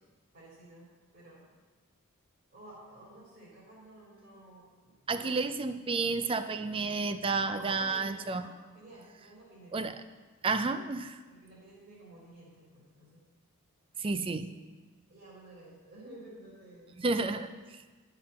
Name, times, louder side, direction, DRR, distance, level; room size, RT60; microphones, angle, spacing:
voice 1, 0.3-0.9 1.1-1.5 2.5-5.4 7.3-9.9 11.3-13.2 15.1-17.4, right 1 dB, 45° right, -8 dB, 3.5 m, -52 dB
voice 2, 5.1-8.5 9.7-10.0 10.4-11.2 14.0-14.5 17.0-17.5, right 3 dB, 25° right, 10 dB, 0.4 m, -31 dB
11.5 x 5.8 x 5.7 m, 1.4 s
head